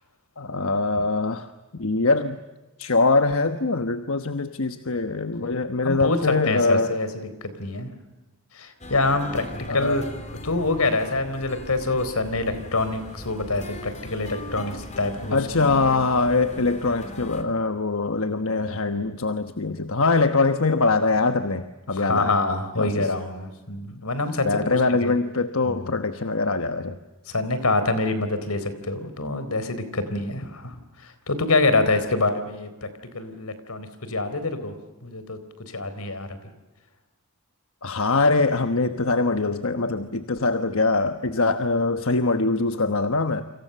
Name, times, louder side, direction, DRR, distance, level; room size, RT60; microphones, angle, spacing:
voice 1, 0.4-2.4 2.8-6.9 9.7-10.0 15.3-22.3 22.8-23.1 24.4-27.0 37.8-43.4, left 3 dB, 65° left, 9 dB, 1.2 m, -23 dB
voice 2, 5.8-7.1 7.4-7.9 8.5-10.1 10.4-15.4 21.9-25.2 25.7-26.0 27.3-32.9 33.1-34.8 35.0-36.4, left 2 dB, 85° left, 11 dB, 4.0 m, -26 dB
sound 1, 8.8-17.4, left 1 dB, 35° left, 3.3 m, -38 dB
29.5 x 26.5 x 6.8 m, 1.1 s
head